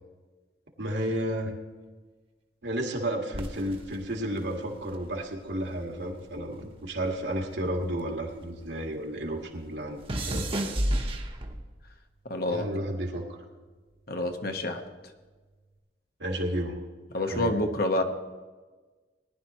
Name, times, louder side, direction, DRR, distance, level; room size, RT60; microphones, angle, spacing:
voice 1, 0.8-1.5 2.6-10.0 10.3-10.5 12.5-13.4 16.2-16.8 17.3-17.6, right 1 dB, 75° right, 2 dB, 2.0 m, -32 dB
sound 1, 3.3-5.8 6.1-8.8 9.0-11.8 12.6-13.0, right 1 dB, 30° right, 1.0 m, -33 dB
voice 2, 12.3-12.7 14.1-14.8 17.1-18.0, left 1 dB, 55° left, 5 dB, 1.1 m, -27 dB
19.0 x 11.0 x 3.1 m, 1.3 s
head